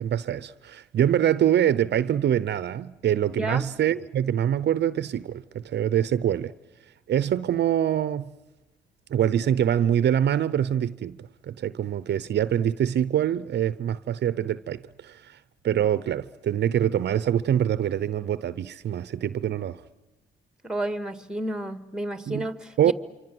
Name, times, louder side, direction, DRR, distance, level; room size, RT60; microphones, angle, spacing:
voice 1, 0.0-6.5 7.1-8.3 9.1-15.4 15.6-19.8 22.3-22.5 22.8-22.9, right 10 dB, 60° right, 0.8 m, -24 dB
voice 2, 3.4-3.7 20.6-22.9, right 1 dB, 5° right, 2.0 m, -31 dB
26.0 x 25.5 x 7.9 m
cardioid pair, 90°, 20 cm